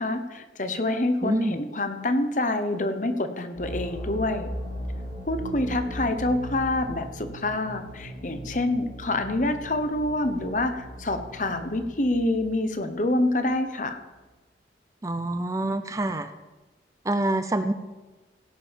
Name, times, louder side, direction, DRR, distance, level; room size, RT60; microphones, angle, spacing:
voice 1, 0.0-4.5 5.3-14.0, left 2 dB, 45° left, 8 dB, 1.0 m, -27 dB
voice 2, 1.2-1.6 15.0-16.3 17.1-17.7, right 2 dB, 20° right, 10 dB, 0.5 m, -26 dB
sound 1, 3.5-13.4, equal, 90° left, 4.9 m, -38 dB
16.5 x 5.5 x 7.2 m, 1.2 s
head